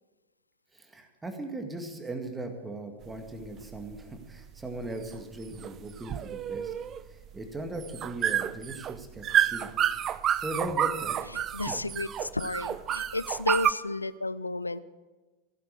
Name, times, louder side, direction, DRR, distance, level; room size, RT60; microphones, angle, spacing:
voice 1, 0.7-6.7 7.1-9.7 10.4-11.2 11.7-11.8, right 2 dB, 10° right, 5 dB, 2.0 m, -38 dB
sound 1, 3.0-13.7, right 10 dB, 30° right, 0.5 m, -30 dB
voice 2, 11.3-14.8, left 2 dB, 80° left, 15 dB, 0.5 m, -32 dB
15.5 x 11.5 x 6.6 m, 1.2 s
figure-of-eight pair, 90°, 0 cm